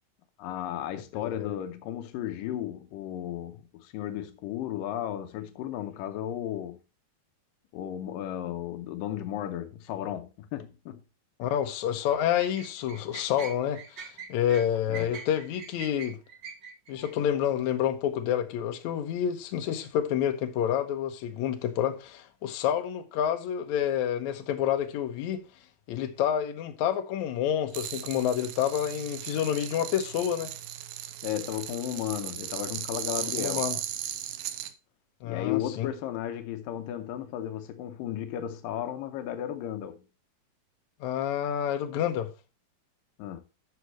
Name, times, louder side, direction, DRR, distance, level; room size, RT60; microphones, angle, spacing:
voice 1, 0.4-6.8 7.7-11.0 14.9-15.1 31.2-33.6 35.2-40.0 43.2-43.4, left 11 dB, 85° left, 2.4 m, -34 dB
voice 2, 1.2-1.5 11.4-16.2 16.9-25.4 25.9-30.5 33.2-33.8 35.2-35.9 41.0-42.3, left 10 dB, 65° left, 2.2 m, -28 dB
sound 1, 12.1-17.1, right 6 dB, 60° right, 1.1 m, -43 dB
sound 2, 27.7-34.7, right 12 dB, 85° right, 2.4 m, -37 dB
13.0 x 6.2 x 3.1 m
omnidirectional pair, 3.9 m